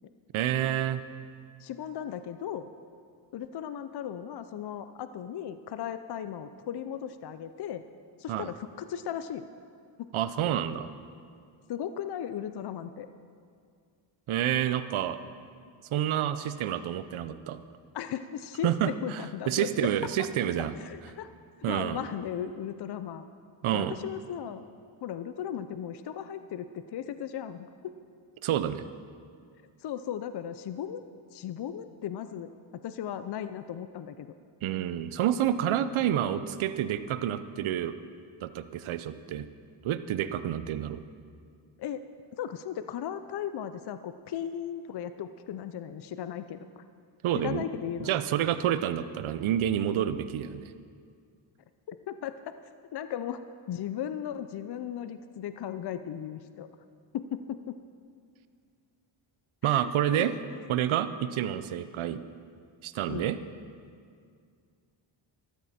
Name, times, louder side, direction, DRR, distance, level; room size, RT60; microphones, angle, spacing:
voice 1, 0.3-1.0 8.3-8.5 10.1-10.9 14.3-15.2 15.9-17.6 18.6-20.7 21.6-22.0 23.6-23.9 28.4-28.8 34.6-37.9 38.4-39.5 39.8-41.0 47.2-47.7 48.0-50.7 59.6-60.3 60.7-62.2 62.8-63.4, right 10 dB, 70° right, 12 dB, 0.8 m, -28 dB
voice 2, 1.6-2.7 3.3-7.8 8.2-9.5 10.0-10.1 11.7-13.1 17.9-19.7 20.8-21.3 21.7-23.2 23.7-24.6 25.0-27.9 29.8-31.0 31.3-34.3 41.8-42.0 42.3-46.8 47.4-48.2 51.9-52.6 52.9-56.7 57.1-57.8 59.6-60.6 63.1-63.3, left 9 dB, 55° left, 11 dB, 0.6 m, -37 dB
13.5 x 13.5 x 4.3 m, 2.2 s
cardioid pair, 90°, 50 cm